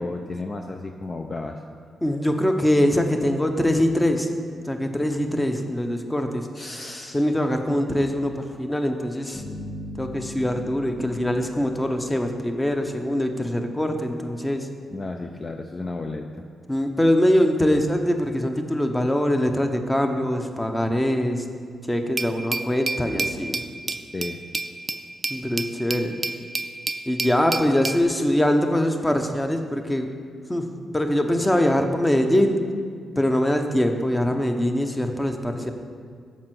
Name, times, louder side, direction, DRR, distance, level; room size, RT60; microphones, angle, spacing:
voice 1, 0.0-1.6 6.6-7.2 7.7-7.8 14.9-16.3 24.1-24.4, left 2 dB, 35° left, 4 dB, 0.5 m, -32 dB
voice 2, 2.0-4.3 4.6-6.5 7.1-9.4 10.0-14.7 16.7-21.5 21.9-23.6 25.3-26.2 27.1-30.1 30.5-32.6 33.2-35.7, left 1 dB, 15° left, 5 dB, 0.9 m, -23 dB
sound 1, 9.3-12.7, left 1 dB, 75° left, 2.4 m, -39 dB
Glass, 22.2-28.0, right 3 dB, 35° right, 0.4 m, -30 dB
7.3 x 5.4 x 6.0 m, 2.2 s
supercardioid pair, 55°, 0 cm